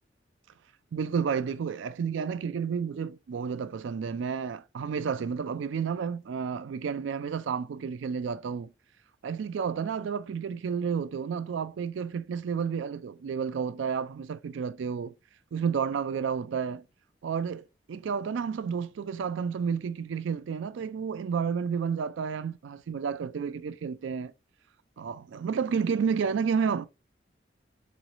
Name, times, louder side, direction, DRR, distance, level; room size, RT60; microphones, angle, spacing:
voice 1, 0.9-8.7 9.2-15.1 15.5-16.8 17.2-24.3 25.0-26.9, right 6 dB, 75° right, 0.3 m, -31 dB
3.9 x 3.1 x 2.5 m
head